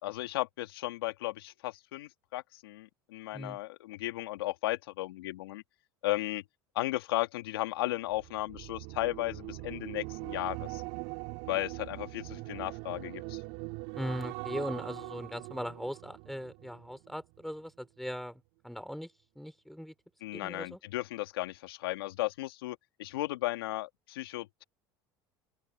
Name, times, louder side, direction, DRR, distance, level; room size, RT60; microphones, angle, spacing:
voice 1, 0.0-5.6 6.0-6.4 6.8-10.8 11.5-13.4 20.2-24.6, left 17 dB, 80° left, 1.8 m, -35 dB
sound 1, 8.0-17.4 17.8-18.1, right 29 dB, 70° right, 4.2 m, -42 dB
voice 2, 14.0-19.1 19.4-19.9 20.3-20.8, equal, ahead, 4.3 m, -39 dB
open air
hypercardioid pair, 75°, 12 cm